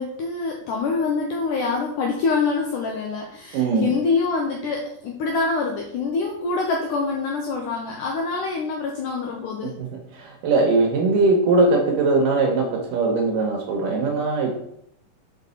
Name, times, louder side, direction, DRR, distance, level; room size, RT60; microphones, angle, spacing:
voice 1, 0.0-9.8, left 4 dB, 85° left, 0 dB, 1.8 m, -25 dB
voice 2, 3.5-3.9 9.8-9.9 10.1-14.5, right 3 dB, 75° right, 1 dB, 2.1 m, -20 dB
5.5 x 5.2 x 4.0 m, 0.74 s
omnidirectional pair, 4.5 m